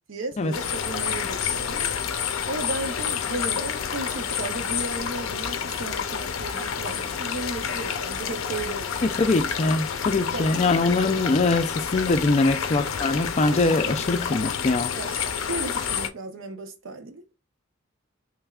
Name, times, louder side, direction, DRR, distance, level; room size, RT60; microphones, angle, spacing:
voice 1, 0.1-1.9 2.5-9.1 10.3-10.5 13.8-14.0 15.0-17.3, right 2 dB, 70° right, 0.7 m, -35 dB
sound 1, 0.5-16.1, left 7 dB, 85° left, 0.5 m, -29 dB
voice 2, 9.0-14.9, left 3 dB, 35° left, 0.4 m, -23 dB
3.4 x 3.3 x 2.3 m
head